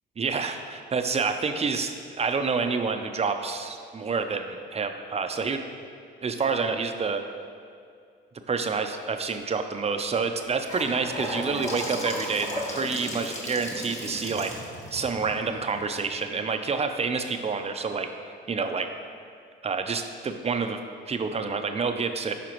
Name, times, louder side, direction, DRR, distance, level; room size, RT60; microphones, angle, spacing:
voice 1, 0.2-5.6 6.2-7.2 8.5-14.5 14.9-18.1 18.5-18.9 19.6-20.8 21.1-22.3, right 4 dB, 30° right, 6 dB, 0.6 m, -28 dB
Gurgling / Sink (filling or washing) / Bathtub (filling or washing), 10.3-16.4, left 1 dB, 35° left, 1.3 m, -36 dB
11.0 x 5.0 x 3.0 m, 2.3 s
cardioid pair, 90°, 20 cm